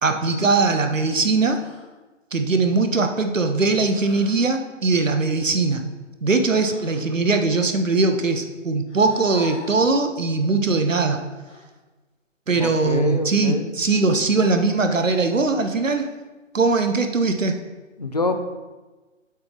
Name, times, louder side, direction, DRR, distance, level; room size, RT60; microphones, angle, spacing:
voice 1, 0.0-1.6 2.3-5.8 6.2-11.2 12.5-16.1 16.5-17.6, right 3 dB, 75° right, 7 dB, 0.9 m, -21 dB
sound 1, 1.5-1.9 3.9-4.5 6.5-7.1 8.9-9.8 11.5-11.7 13.7-14.2 15.6-16.1, left 3 dB, 65° left, 2.1 m, -43 dB
voice 2, 12.5-13.7 18.0-18.4, left 2 dB, 35° left, 7 dB, 0.5 m, -26 dB
7.8 x 3.5 x 6.0 m, 1.2 s
figure-of-eight pair, 145°, 38 cm